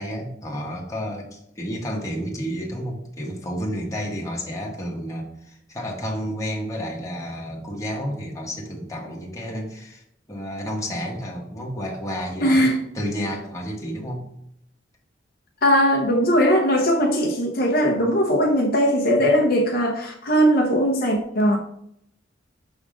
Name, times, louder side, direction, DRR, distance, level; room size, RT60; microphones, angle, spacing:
voice 1, 0.0-14.3, equal, 15° left, -2 dB, 1.4 m, -31 dB
voice 2, 12.4-12.8 15.6-21.6, equal, 55° left, 0 dB, 0.9 m, -19 dB
6.3 x 3.6 x 5.1 m, 0.72 s
head